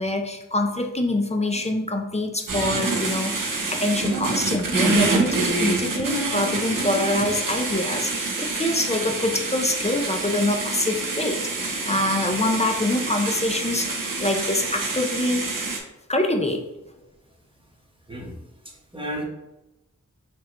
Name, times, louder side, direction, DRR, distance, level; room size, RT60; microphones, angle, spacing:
voice 1, 0.0-15.4 16.1-16.6, left 1 dB, 20° left, 3 dB, 0.5 m, -25 dB
sound 1, 2.5-15.8, right 3 dB, 85° right, 0.7 m, -26 dB
voice 2, 18.6-19.2, equal, 15° right, -1 dB, 1.0 m, -33 dB
5.4 x 2.4 x 2.9 m, 0.94 s
wide cardioid pair, 55°, 31 cm